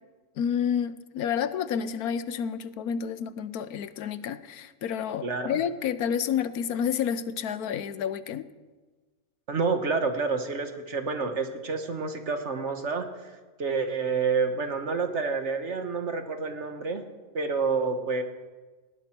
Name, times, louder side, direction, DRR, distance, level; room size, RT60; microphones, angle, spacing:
voice 1, 0.4-8.5, left 8 dB, 85° left, 14 dB, 1.3 m, -29 dB
voice 2, 5.2-5.6 9.5-13.3 13.6-17.0 17.3-18.2, right 4 dB, 50° right, 7 dB, 1.6 m, -28 dB
19.5 x 16.5 x 4.5 m, 1.3 s
omnidirectional pair, 1.5 m